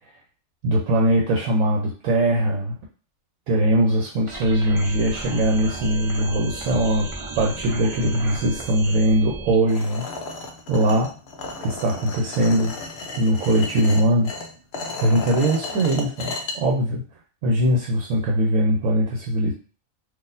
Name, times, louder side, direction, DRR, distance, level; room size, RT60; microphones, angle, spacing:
voice 1, 0.6-2.8 3.5-7.1 7.4-10.1 10.7-11.1 11.6-12.7 13.2-14.3 15.0-17.0 17.4-19.5, right 1 dB, 75° right, -2 dB, 1.1 m, -21 dB
sound 1, 4.3-9.6, right 2 dB, 40° right, 0.4 m, -34 dB
sound 2, 9.7-16.5, left 3 dB, 60° left, 0.8 m, -34 dB
4.0 x 2.6 x 2.6 m, 0.38 s
omnidirectional pair, 1.5 m